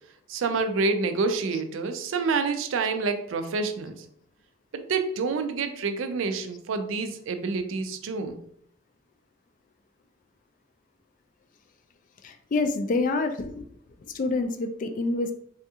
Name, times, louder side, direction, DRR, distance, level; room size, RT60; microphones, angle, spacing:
voice 1, 0.3-4.0 4.7-8.4, right 4 dB, 70° right, 8 dB, 0.4 m, -28 dB
voice 2, 12.2-13.7 14.1-15.3, left 3 dB, 40° left, 7 dB, 0.3 m, -27 dB
3.4 x 2.3 x 2.7 m, 0.66 s
head